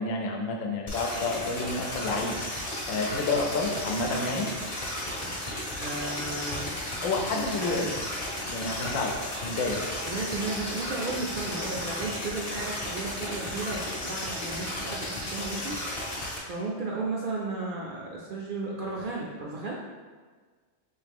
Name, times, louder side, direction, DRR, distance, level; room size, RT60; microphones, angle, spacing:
voice 1, 0.0-2.4 2.9-4.5 7.0-7.9 8.5-9.9, left 3 dB, 90° left, 2 dB, 1.0 m, -29 dB
sound 1, 0.9-16.4, left 1 dB, 35° left, 0.7 m, -34 dB
voice 2, 5.8-6.8 7.3-7.9 10.0-19.8, right 3 dB, 65° right, -4 dB, 0.5 m, -34 dB
3.6 x 2.9 x 3.5 m, 1.5 s
omnidirectional pair, 1.3 m